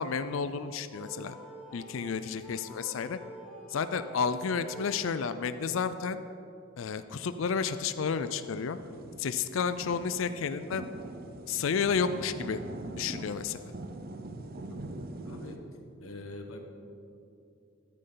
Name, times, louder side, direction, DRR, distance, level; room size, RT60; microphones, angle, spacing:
voice 1, 0.0-1.3 1.7-3.2 3.7-6.2 6.8-8.8 9.2-10.8 11.5-12.6 13.0-13.7, left 6 dB, 70° left, 11 dB, 0.4 m, -31 dB
sound 1, 0.9-5.8, right 1 dB, 10° left, 2.8 m, -47 dB
sound 2, 8.6-15.6, right 2 dB, 45° right, 0.6 m, -43 dB
voice 2, 15.2-15.6 16.0-16.6, left 2 dB, 90° left, 4 dB, 1.2 m, -44 dB
13.5 x 10.0 x 3.9 m, 2.6 s
head